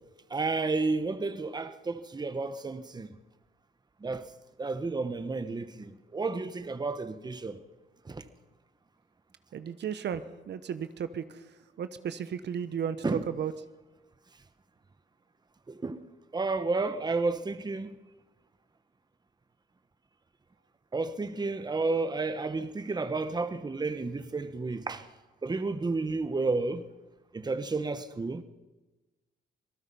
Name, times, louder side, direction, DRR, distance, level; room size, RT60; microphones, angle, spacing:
voice 1, 0.3-3.1 4.0-4.3 4.6-7.6 8.1-8.2 13.0-13.3 15.7-16.0 16.3-18.0 20.9-25.0 25.4-26.8 27.3-28.4, right 3 dB, 20° right, 1.1 m, -31 dB
voice 2, 9.5-11.4 11.8-13.5, right 8 dB, 60° right, 1.1 m, -34 dB
25.5 x 18.5 x 5.5 m
cardioid pair, 90°, 20 cm